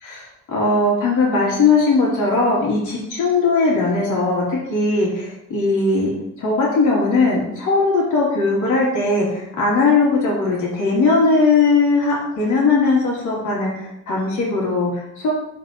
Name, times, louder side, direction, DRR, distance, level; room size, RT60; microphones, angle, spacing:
voice 1, 0.0-15.3, left 3 dB, 80° left, -4 dB, 3.3 m, -19 dB
10.5 x 5.2 x 3.1 m, 0.82 s
cardioid pair, 90°, 30 cm